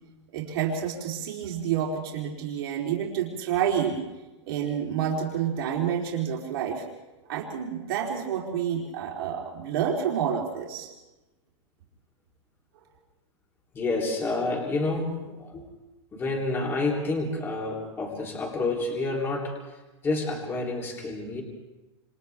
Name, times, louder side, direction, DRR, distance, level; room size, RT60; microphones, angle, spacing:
voice 1, 0.3-4.0 4.5-6.8 7.3-10.9, right 8 dB, 55° right, -2 dB, 3.8 m, -29 dB
voice 2, 13.7-15.6 16.1-19.5 20.0-21.4, left 2 dB, 15° left, -1 dB, 3.4 m, -29 dB
29.0 x 27.5 x 3.6 m, 1.1 s
supercardioid pair, 160°, 15 cm